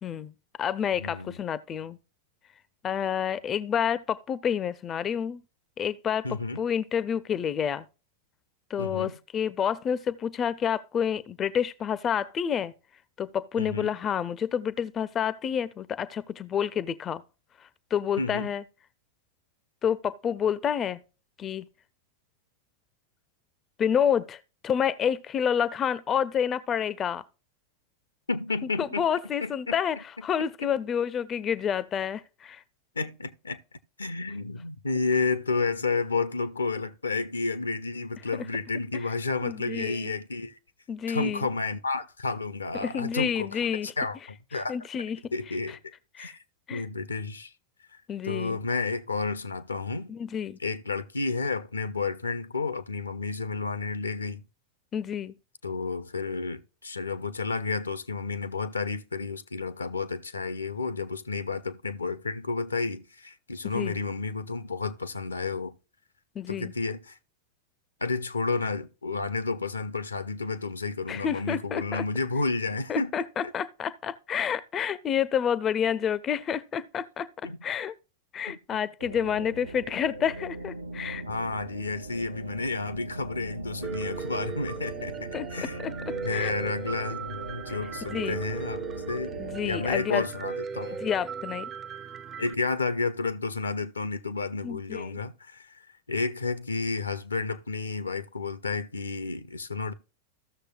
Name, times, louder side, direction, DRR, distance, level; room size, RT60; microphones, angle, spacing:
voice 1, 0.0-0.3 0.6-2.0 2.8-5.4 5.8-7.8 8.7-12.7 13.2-17.2 17.9-18.6 19.8-21.0 21.4-21.7 23.8-27.2 28.8-32.6 39.4-40.1 40.9-41.5 42.8-43.9 44.7-45.3 45.7-45.8 46.2-46.4 46.7-46.8 48.1-48.6 50.1-50.6 54.9-55.3 63.7-64.0 66.4-66.7 71.1-72.0 72.9-77.3 77.6-77.9 78.3-81.2 85.3-86.5 88.1-88.4 89.4-90.3 91.0-91.7 94.6-95.2, left 8 dB, 25° left, 0.5 m, -29 dB
voice 2, 1.0-1.4 6.2-6.6 8.8-9.2 13.6-13.9 18.2-18.5 28.3-29.1 29.4-29.8 30.6-30.7 33.0-33.6 34.0-40.6 41.1-43.6 44.0-44.8 45.3-45.8 46.2-46.4 46.7-47.5 48.2-50.1 50.6-54.4 55.6-65.7 66.5-67.2 68.0-73.1 77.4-77.6 78.5-78.6 81.3-85.8 86.2-89.3 89.6-91.0 92.4-95.7 96.1-99.9, left 3 dB, 75° left, 0.6 m, -31 dB
sound 1, 79.0-90.0, right 2 dB, 80° right, 0.7 m, -40 dB
Piano, 83.8-92.5, right 6 dB, 25° right, 0.5 m, -37 dB
15.0 x 6.6 x 2.3 m
figure-of-eight pair, 90°, 0 cm